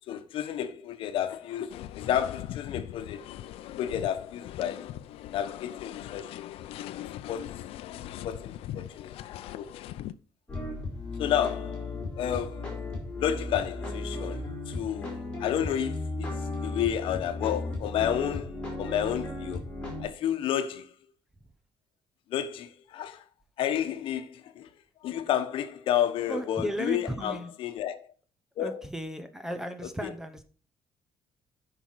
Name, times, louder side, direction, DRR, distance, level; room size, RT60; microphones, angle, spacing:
voice 1, 0.1-3.2 3.8-4.9 5.3-6.4 7.3-7.5 8.2-9.1 9.5-9.7 11.2-11.9 12.2-12.8 13.2-19.6 20.0-20.9 22.3-23.2 23.6-24.7 25.0-28.0 28.6-28.8 30.0-30.1, left 10 dB, 65° left, 1.0 m, -31 dB
sound 1, 1.7-10.1, left 12 dB, 80° left, 0.5 m, -41 dB
sound 2, 10.5-20.0, left 2 dB, 10° left, 3.8 m, -35 dB
voice 2, 26.3-27.5 28.6-30.5, equal, 5° right, 0.7 m, -35 dB
9.8 x 5.8 x 4.7 m
cardioid pair, 180°, 10 cm